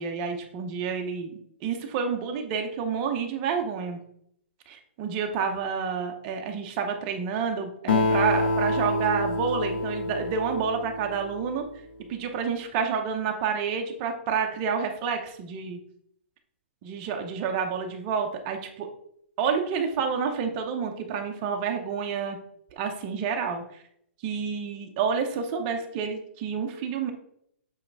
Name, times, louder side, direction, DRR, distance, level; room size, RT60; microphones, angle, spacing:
voice 1, 0.0-4.0 4.7-11.6 12.1-15.8 16.8-18.9 19.4-22.4 22.8-23.6 24.2-27.1, right 6 dB, 25° right, 4 dB, 0.7 m, -29 dB
Acoustic guitar, 7.9-11.7, left 2 dB, 50° left, 1.0 m, -27 dB
7.6 x 3.2 x 4.6 m, 0.70 s
hypercardioid pair, 170°, 7 cm